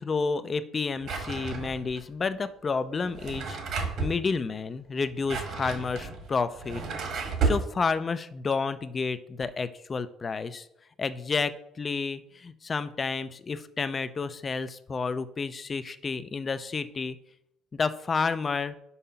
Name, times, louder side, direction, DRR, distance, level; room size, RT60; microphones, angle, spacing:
voice 1, 0.0-6.8 7.4-10.7 11.0-17.2 17.7-18.7, left 4 dB, 25° left, 14 dB, 0.4 m, -30 dB
Drawer open or close, 1.0-2.0 3.0-4.2 5.0-7.7, right 4 dB, 55° right, 1.4 m, -31 dB
5.5 x 4.8 x 5.6 m, 0.79 s
cardioid pair, 140°, 0 cm